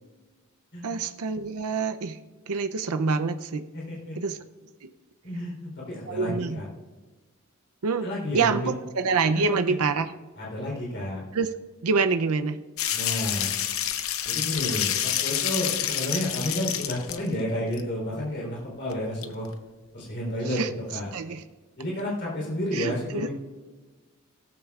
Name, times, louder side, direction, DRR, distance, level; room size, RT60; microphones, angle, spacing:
voice 1, 0.8-2.2 2.5-3.6 4.2-4.4 6.1-6.6 7.8-8.1 8.3-10.1 11.3-11.5 11.8-12.6 20.4-20.7 21.1-21.4 22.7-23.3, right 4 dB, 85° right, 9 dB, 0.6 m, -26 dB
voice 2, 3.7-4.2 5.2-6.7 8.0-8.7 9.5-9.8 10.4-11.2 12.9-13.5 14.2-19.5 19.9-20.6 20.9-21.1 21.8-23.3, left 1 dB, 50° left, -4 dB, 3.7 m, -31 dB
sound 1, 12.8-17.3 17.7-17.8 18.9-19.0 19.2-19.3, left 10 dB, 70° left, 0.8 m, -28 dB
16.5 x 14.0 x 2.4 m, 1.3 s
head